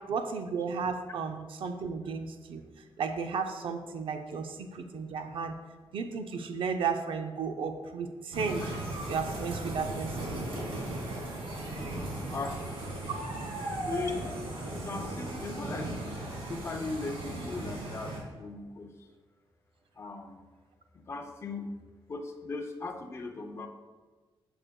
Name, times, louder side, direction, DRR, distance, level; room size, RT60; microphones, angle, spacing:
voice 1, 0.1-2.6 3.0-5.6 5.9-8.7 9.1-10.3, right 5 dB, 70° right, 6 dB, 0.6 m, -34 dB
sound 1, 8.3-18.2, right 1 dB, 90° right, 1.9 m, -37 dB
voice 2, 13.7-14.3 14.7-15.9 16.5-18.9 20.0-20.4 21.0-21.7 22.1-23.7, left 3 dB, 30° left, 5 dB, 0.5 m, -38 dB
8.8 x 6.5 x 2.3 m, 1.3 s
wide cardioid pair, 180°, 9 cm